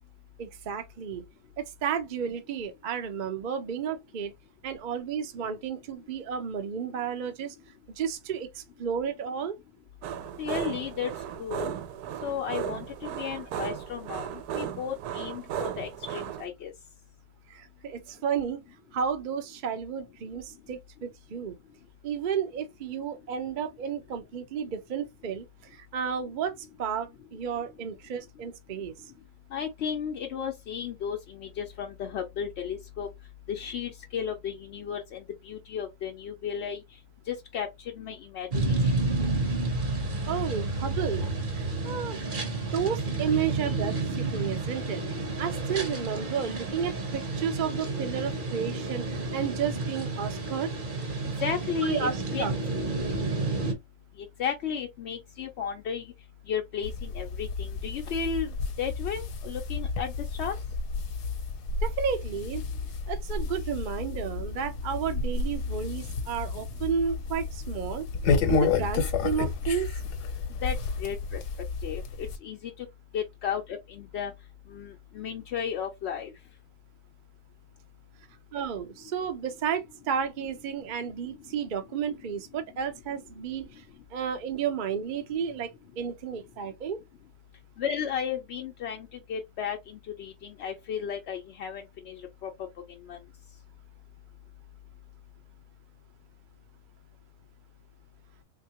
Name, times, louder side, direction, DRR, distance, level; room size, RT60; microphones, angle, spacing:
voice 1, 0.4-1.2 1.6-4.3 4.6-7.5 8.0-9.6 17.5-18.6 18.9-21.5 22.0-25.4 25.9-26.5 26.8-28.9 40.3-41.3 41.5-42.2 42.7-45.0 45.4-49.0 49.3-50.7 51.8-52.5 61.8-62.6 63.1-68.1 68.5-69.9 78.5-83.7 84.1-87.0, right 7 dB, 55° right, 0.5 m, -32 dB
sound 1, 10.0-16.5, right 10 dB, 75° right, 1.1 m, -36 dB
voice 2, 10.4-11.1 11.4-11.7 12.2-16.7 29.5-33.1 33.5-36.8 37.3-37.7 38.0-38.9 51.4-52.5 54.2-56.1 56.5-60.1 60.4-60.5 70.6-71.4 71.8-72.9 73.1-74.3 74.7-76.3 87.8-92.5 93.1-93.2, left 7 dB, 65° left, 0.7 m, -34 dB
sound 2, 38.5-53.7, right 3 dB, 40° right, 1.0 m, -30 dB
sound 3, 56.8-72.4, left 4 dB, 80° left, 1.3 m, -31 dB
3.6 x 2.8 x 2.8 m
omnidirectional pair, 1.7 m